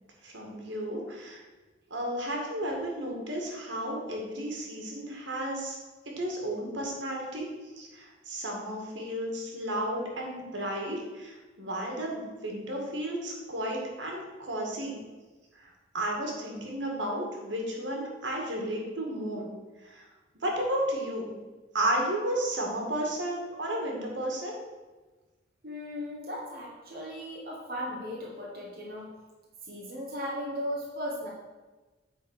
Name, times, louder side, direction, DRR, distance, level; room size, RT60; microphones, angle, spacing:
voice 1, 0.2-1.4 1.9-5.8 6.2-7.5 7.8-15.0 15.6-19.5 19.8-20.0 20.4-21.3 21.7-24.6, right 1 dB, 80° right, -1 dB, 2.1 m, -33 dB
voice 2, 25.6-29.1 29.6-31.3, equal, 50° right, -4 dB, 1.2 m, -37 dB
8.5 x 4.3 x 6.1 m, 1.2 s
head